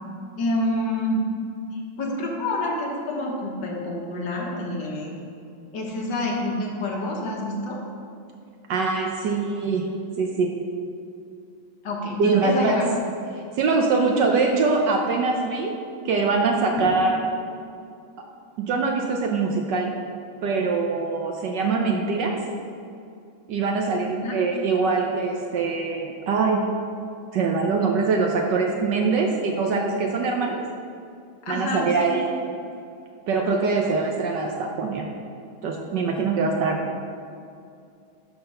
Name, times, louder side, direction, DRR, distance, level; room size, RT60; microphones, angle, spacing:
voice 1, 0.4-1.2 1.7-5.2 5.7-7.8 11.8-12.9 24.0-24.3 31.4-32.4, left 1 dB, 60° left, -1 dB, 1.7 m, -28 dB
voice 2, 8.7-9.8 10.2-10.5 12.2-12.8 13.6-15.8 16.0-17.2 18.6-19.9 20.4-22.4 23.5-26.6 27.3-30.6 31.5-32.2 33.3-35.1 35.6-36.8, right 4 dB, 70° right, 1 dB, 1.2 m, -23 dB
11.0 x 4.0 x 5.4 m, 2.5 s
omnidirectional pair, 2.3 m